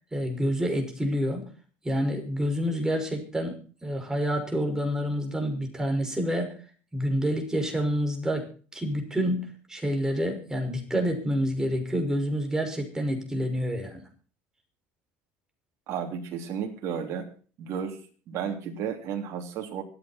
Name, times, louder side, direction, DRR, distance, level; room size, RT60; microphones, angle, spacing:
voice 1, 0.1-1.5 1.8-6.5 6.9-8.5 8.7-14.0, equal, 10° right, 4 dB, 5.7 m, -28 dB
voice 2, 15.9-17.3 17.6-18.0 18.3-19.8, right 7 dB, 55° right, 3 dB, 3.2 m, -33 dB
25.0 x 8.9 x 4.4 m, 0.39 s
supercardioid pair, 100°, 6 cm